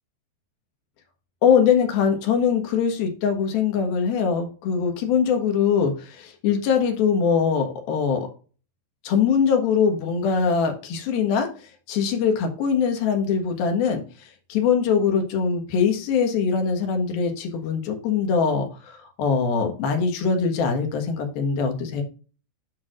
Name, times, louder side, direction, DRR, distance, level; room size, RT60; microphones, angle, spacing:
voice 1, 1.4-8.3 9.0-11.5 11.9-14.0 14.5-22.0, left 6 dB, 80° left, 4 dB, 3.2 m, -22 dB
12.0 x 4.8 x 2.5 m, 0.36 s
omnidirectional pair, 4.2 m